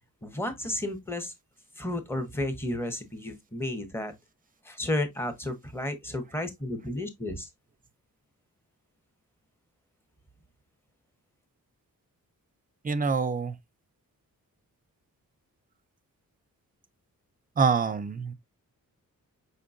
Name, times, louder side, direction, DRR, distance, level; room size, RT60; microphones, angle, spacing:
voice 1, 0.2-1.3 1.8-4.1 4.6-7.5, left 1 dB, 5° left, 0.8 m, -32 dB
voice 2, 12.8-13.6 17.6-18.3, right 5 dB, 25° right, 0.5 m, -25 dB
5.4 x 3.7 x 2.5 m
wide cardioid pair, 140°, 35 cm